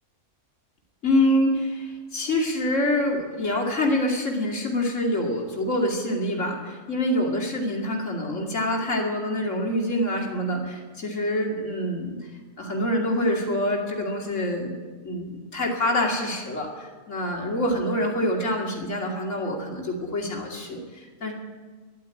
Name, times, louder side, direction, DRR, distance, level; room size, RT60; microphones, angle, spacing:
voice 1, 1.0-12.2 12.6-14.7 15.0-21.3, left 1 dB, 70° left, -1 dB, 2.9 m, -26 dB
13.5 x 11.5 x 9.1 m, 1.4 s
omnidirectional pair, 1.4 m